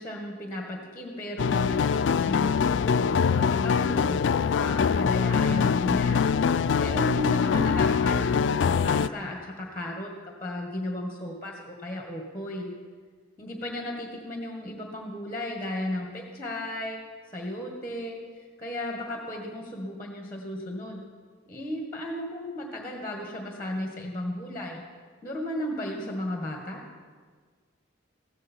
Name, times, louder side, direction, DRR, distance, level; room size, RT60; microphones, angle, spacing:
voice 1, 0.0-3.1 3.4-6.2 6.8-12.7 13.4-17.0 17.3-18.2 18.6-21.0 21.4-24.8 25.2-26.8, left 1 dB, 10° left, 1 dB, 1.6 m, -34 dB
sound 1, 1.4-9.1, left 6 dB, 70° left, 0.3 m, -23 dB
15.5 x 14.5 x 4.5 m, 1.5 s
head